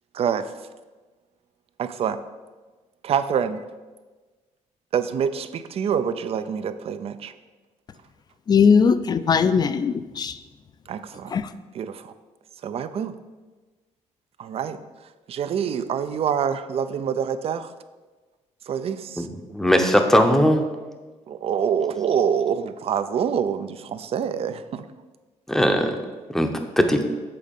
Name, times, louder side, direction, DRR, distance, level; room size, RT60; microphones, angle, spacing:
voice 1, 0.1-0.5 1.8-2.2 3.0-3.6 4.9-7.3 10.9-11.3 11.7-12.1 12.6-13.1 14.4-14.8 15.3-17.7 18.7-19.3 21.3-24.8, right 7 dB, 50° right, 12 dB, 0.4 m, -26 dB
voice 2, 8.5-10.3 11.3-11.5, left 6 dB, 35° left, 12 dB, 0.4 m, -19 dB
voice 3, 19.2-20.6 25.5-26.0 26.3-26.5 26.8-27.0, equal, 5° left, 5 dB, 0.7 m, -19 dB
7.6 x 4.0 x 5.2 m, 1.3 s
cardioid pair, 120°, 13 cm